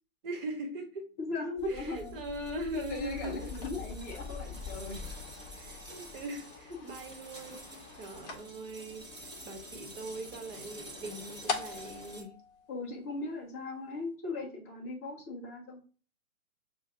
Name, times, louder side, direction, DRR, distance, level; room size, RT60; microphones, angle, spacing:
voice 1, 0.2-1.1 1.7-3.7 5.6-12.3, right 1 dB, 40° right, 1.3 m, -41 dB
voice 2, 1.2-2.2 2.7-5.1 12.7-15.8, left 2 dB, 10° left, 0.5 m, -38 dB
sound 1, 1.6-12.2, left 3 dB, 10° right, 0.9 m, -46 dB
sound 2, 3.0-13.4, left 5 dB, 30° left, 0.9 m, -45 dB
6.2 x 2.5 x 2.7 m
hypercardioid pair, 140°, 44 cm